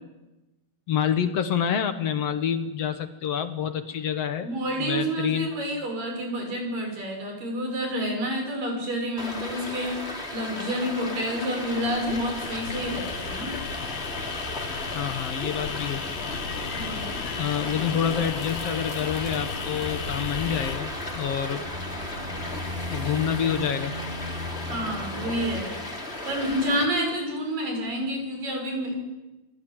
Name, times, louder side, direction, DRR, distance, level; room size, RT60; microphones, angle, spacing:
voice 1, 0.9-4.5 4.8-5.5 14.9-16.0 17.4-21.7 22.9-23.9, left 8 dB, 55° left, 9 dB, 1.8 m, -27 dB
voice 2, 4.4-10.0 10.3-13.5 16.8-17.2 24.7-25.8 26.2-29.0, equal, 60° right, 3 dB, 8.0 m, -29 dB
Stream, 9.2-26.8, left 2 dB, 15° left, 3.7 m, -35 dB
sound 1, 11.6-20.8, left 6 dB, 75° left, 3.6 m, -36 dB
sound 2, 16.3-25.6, equal, 10° right, 6.1 m, -38 dB
29.5 x 21.0 x 9.0 m, 1.1 s
omnidirectional pair, 4.3 m